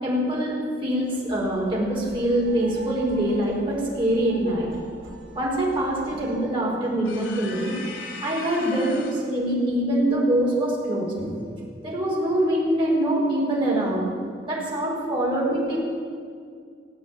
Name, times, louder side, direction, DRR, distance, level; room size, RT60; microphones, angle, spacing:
voice 1, 0.0-4.7 5.3-7.7 8.2-11.3 11.8-14.1 14.4-15.8, right 1 dB, 30° right, -5 dB, 5.1 m, -24 dB
sound 1, 1.3-6.4, right 1 dB, 85° right, 4.3 m, -43 dB
sound 2, 7.0-9.3, left 4 dB, 90° left, 2.6 m, -38 dB
17.5 x 8.8 x 8.9 m, 2.2 s
head